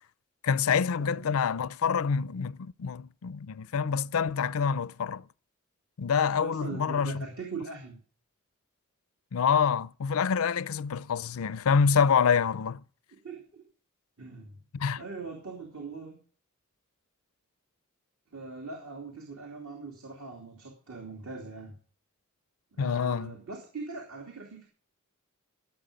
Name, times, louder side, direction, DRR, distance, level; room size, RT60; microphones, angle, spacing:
voice 1, 0.4-5.2 6.0-7.2 9.3-12.8 14.7-15.0 22.8-23.4, left 6 dB, 75° left, 0.5 m, -26 dB
voice 2, 1.0-1.4 6.3-8.0 13.1-13.6 14.2-14.5 15.0-16.2 18.3-21.8 22.7-24.7, right 4 dB, 70° right, 2.9 m, -41 dB
15.5 x 8.5 x 5.1 m
head